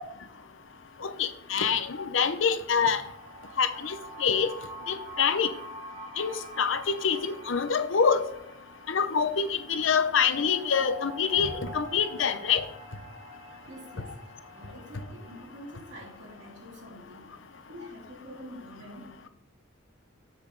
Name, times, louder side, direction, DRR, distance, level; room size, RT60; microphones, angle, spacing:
voice 1, 1.0-3.0 3.6-4.5 4.9-5.5 6.2-8.2 8.9-12.6, left 6 dB, 70° left, 10 dB, 0.7 m, -26 dB
sound 1, 2.9-16.6, right 1 dB, 30° right, 1.2 m, -46 dB
voice 2, 13.4-17.4 17.7-19.3, equal, 60° right, -2 dB, 3.1 m, -47 dB
7.7 x 7.1 x 3.9 m, 0.80 s
head